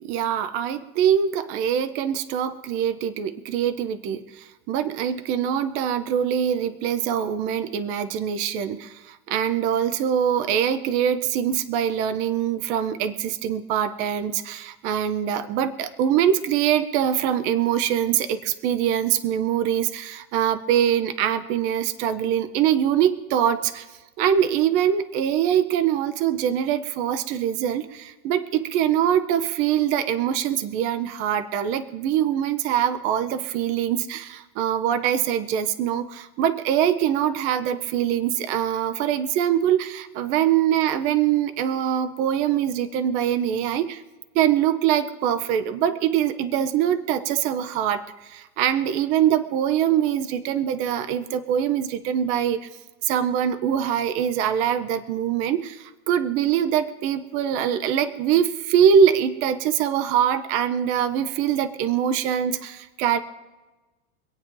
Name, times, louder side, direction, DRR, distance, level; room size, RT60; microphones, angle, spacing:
voice 1, 0.0-23.9 24.2-44.0 44.3-52.6 53.0-63.2, right 9 dB, 20° right, 10 dB, 0.4 m, -23 dB
25.5 x 8.6 x 3.7 m, 1.2 s
supercardioid pair, 165°, 42 cm